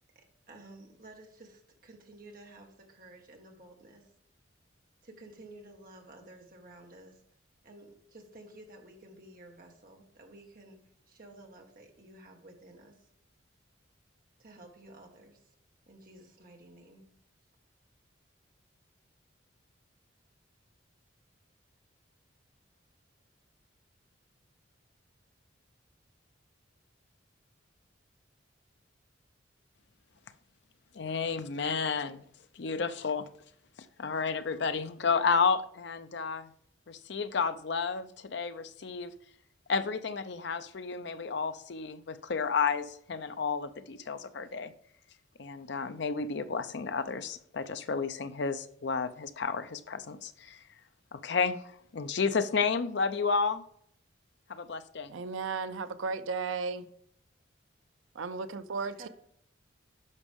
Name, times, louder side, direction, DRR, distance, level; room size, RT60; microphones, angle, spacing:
voice 1, 0.1-4.1 5.0-7.2 7.6-10.8 11.1-13.1 14.4-15.5 15.9-17.1 59.0-59.1, right 2 dB, 45° right, 1.6 m, -53 dB
voice 2, 30.9-32.2 32.6-33.3 34.0-36.5 36.9-39.1 39.7-44.7 45.4-50.6 51.1-53.6 54.5-55.1, left 5 dB, 60° left, 0.5 m, -31 dB
voice 3, 55.1-56.9 58.1-59.1, right 4 dB, 80° right, 0.5 m, -35 dB
9.7 x 6.2 x 3.6 m
head